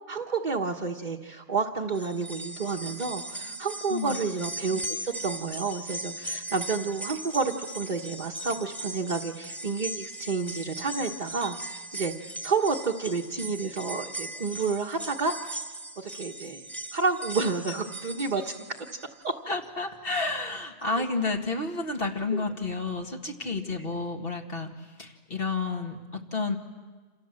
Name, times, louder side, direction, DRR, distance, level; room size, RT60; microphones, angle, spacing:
voice 1, 0.1-15.3 16.0-16.7 16.9-18.5 19.2-19.3 22.3-22.4, right 4 dB, 35° right, -1 dB, 1.3 m, -30 dB
sound 1, 1.9-19.2 19.6-19.7 20.8-20.9, right 1 dB, ahead, 1.7 m, -39 dB
voice 2, 3.4-4.2 19.5-24.7 25.0-26.6, left 3 dB, 45° left, 1 dB, 2.2 m, -31 dB
28.0 x 27.5 x 7.6 m, 1.4 s
omnidirectional pair, 1.3 m